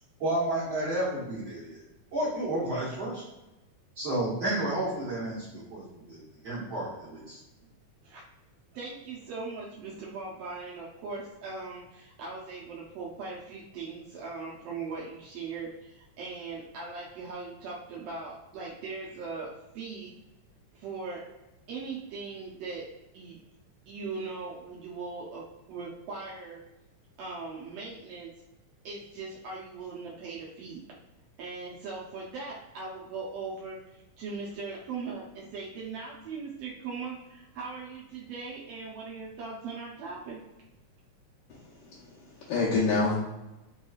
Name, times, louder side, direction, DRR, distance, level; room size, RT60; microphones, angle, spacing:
voice 1, 0.2-1.8 2.1-3.2 3.9-7.4, right 1 dB, 60° right, -8 dB, 1.3 m, -31 dB
voice 2, 8.7-20.1 20.7-21.3 21.7-22.9 23.1-23.4 23.9-26.6 27.2-28.3 28.8-30.8 31.4-40.4, right 4 dB, 85° right, -4 dB, 1.4 m, -39 dB
voice 3, 41.5-42.0 42.4-43.2, left 3 dB, 75° left, -7 dB, 2.1 m, -27 dB
5.0 x 2.9 x 2.3 m, 0.99 s
omnidirectional pair, 3.5 m